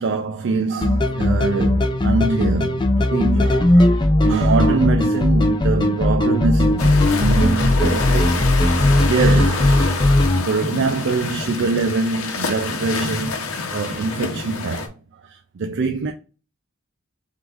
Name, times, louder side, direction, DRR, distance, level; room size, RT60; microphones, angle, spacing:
voice 1, 0.0-14.9 15.2-16.1, right 4 dB, 60° right, 0.4 m, -24 dB
sound 1, 0.8-10.4, left 1 dB, 20° left, 0.5 m, -18 dB
sound 2, 6.8-14.9, left 4 dB, 85° left, 0.9 m, -27 dB
3.6 x 3.5 x 3.5 m
head